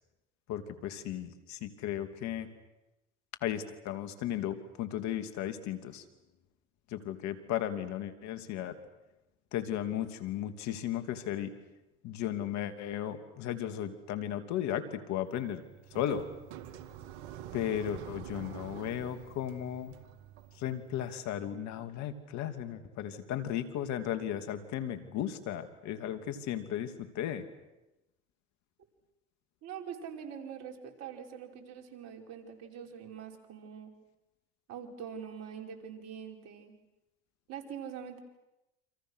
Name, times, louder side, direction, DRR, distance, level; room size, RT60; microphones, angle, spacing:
voice 1, 0.5-2.5 3.4-6.0 6.9-8.8 9.5-11.5 12.0-15.6 15.9-16.3 17.5-19.9 20.6-27.4, left 10 dB, 60° left, 9 dB, 2.7 m, -35 dB
sound 1, 15.3-21.2, right 11 dB, 75° right, 2.1 m, -47 dB
voice 2, 29.6-33.9 34.7-36.7 37.5-38.2, right 8 dB, 55° right, 3 dB, 5.0 m, -44 dB
29.0 x 27.0 x 6.4 m, 0.96 s
supercardioid pair, 85°, 31 cm